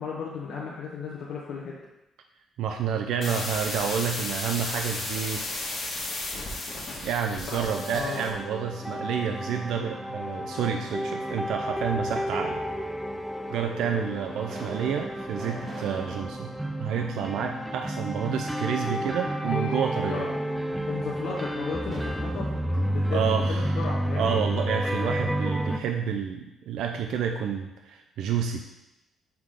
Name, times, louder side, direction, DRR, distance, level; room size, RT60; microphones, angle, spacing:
voice 1, 0.0-1.8 7.5-8.3 20.1-20.3 20.9-24.4, left 5 dB, 60° left, -4 dB, 0.9 m, -35 dB
voice 2, 2.6-5.7 7.0-12.6 13.5-16.5 16.8-20.3 23.1-23.7 24.2-28.6, right 7 dB, 75° right, 4 dB, 0.4 m, -29 dB
sound 1, 3.2-8.3, left 2 dB, 40° left, 1.4 m, -34 dB
sound 2, 7.7-25.8, equal, 5° right, 0.4 m, -31 dB
sound 3, 8.8-9.3 10.6-11.4 12.3-12.4 13.3-13.4 13.9-18.0 18.4-18.5 21.8-24.6, right 1 dB, 25° right, 1.2 m, -45 dB
5.8 x 3.6 x 4.8 m, 0.93 s
cardioid pair, 135°, 0 cm